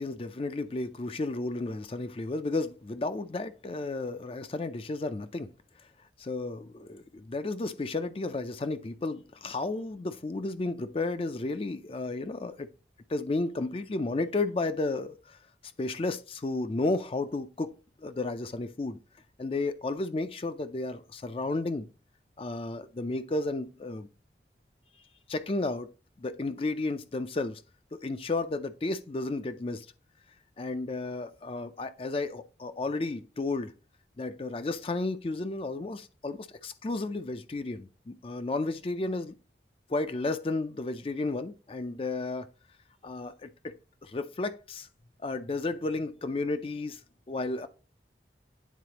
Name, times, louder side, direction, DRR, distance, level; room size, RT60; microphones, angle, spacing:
voice 1, 0.0-5.5 6.2-12.7 13.1-15.4 15.8-17.7 18.0-19.0 19.4-21.9 22.4-24.1 25.3-25.9 26.2-27.6 27.9-29.9 30.6-33.7 34.2-39.4 39.9-42.5 43.0-43.8 44.0-44.9 45.2-47.0 47.3-47.7, left 2 dB, 30° left, 0.4 m, -32 dB
9.3 x 4.0 x 2.9 m
head